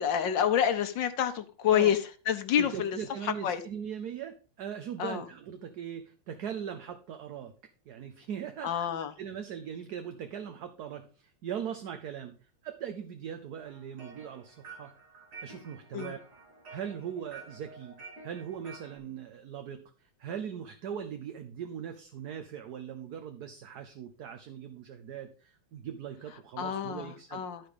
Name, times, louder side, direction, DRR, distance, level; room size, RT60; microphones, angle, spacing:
voice 1, 0.0-2.0 2.3-3.0 3.2-3.6 5.0-5.2 8.6-9.1 15.9-16.1 26.6-27.6, left 9 dB, 65° left, 1.6 m, -28 dB
voice 2, 2.5-7.6 7.9-8.9 9.2-12.4 12.6-14.9 15.4-16.2 16.7-27.5, right 8 dB, 60° right, 1.2 m, -40 dB
sound 1, 13.7-19.0, right 4 dB, 85° right, 3.9 m, -50 dB
12.5 x 4.9 x 4.9 m
omnidirectional pair, 2.2 m